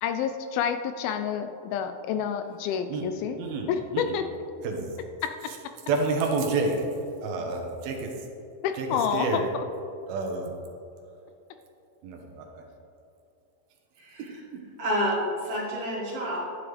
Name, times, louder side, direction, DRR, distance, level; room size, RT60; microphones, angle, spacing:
voice 1, 0.0-3.4 3.7-4.2 8.6-9.4, left 8 dB, 80° left, 8 dB, 2.3 m, -28 dB
voice 2, 3.4-4.2 4.6-5.0 5.5-5.6 5.9-6.9 7.2-8.3 8.7-9.4 10.1-10.5 11.1-11.2 12.0-12.6 14.2-14.3 14.5-14.6, right 3 dB, 80° right, 2 dB, 2.8 m, -29 dB
voice 3, 14.8-16.4, equal, 45° right, -6 dB, 2.8 m, -28 dB
12.5 x 9.5 x 3.3 m, 2.6 s
omnidirectional pair, 4.4 m